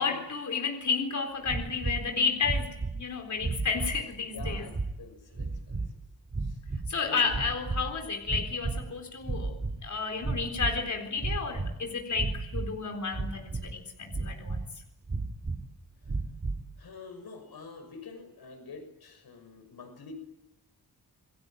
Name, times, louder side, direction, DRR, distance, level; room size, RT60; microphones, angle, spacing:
voice 1, 0.0-4.7 6.9-14.6, left 5 dB, 50° left, 4.1 m, -32 dB
sound 1, 1.4-2.1 2.4-3.0 3.4-4.0 4.4-5.0 5.3-5.9 6.3-7.0 7.3-7.9 8.2-8.9 9.2-9.8 10.2-10.8 11.2-11.7 12.1-12.7 13.1-13.7 14.1-14.7 15.1-15.6 16.0-16.6, right 3 dB, 30° right, 3.2 m, -33 dB
voice 2, 4.3-5.8 6.4-6.6 7.0-7.4 16.8-20.1, left 4 dB, 75° left, 6.4 m, -46 dB
28.5 x 22.5 x 9.1 m
wide cardioid pair, 175°, 37 cm